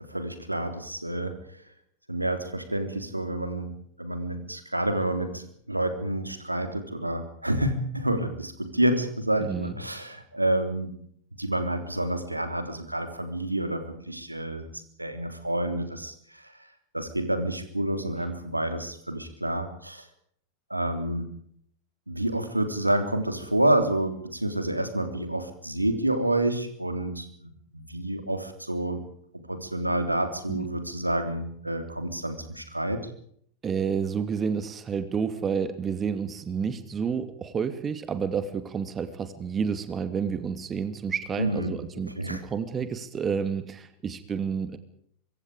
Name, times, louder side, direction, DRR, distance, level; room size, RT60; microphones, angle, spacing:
voice 1, 0.1-1.4 2.1-3.7 4.0-10.9 11.4-14.7 15.0-16.5 16.9-20.1 20.7-21.2 22.1-29.0 29.5-33.1 41.4-41.7 42.2-42.4, right 1 dB, 85° right, 8 dB, 3.5 m, -28 dB
voice 2, 9.4-9.7 30.5-30.7 33.6-44.8, right 6 dB, 20° right, 11 dB, 2.5 m, -30 dB
25.0 x 24.5 x 5.0 m, 0.64 s
figure-of-eight pair, 90°, 0 cm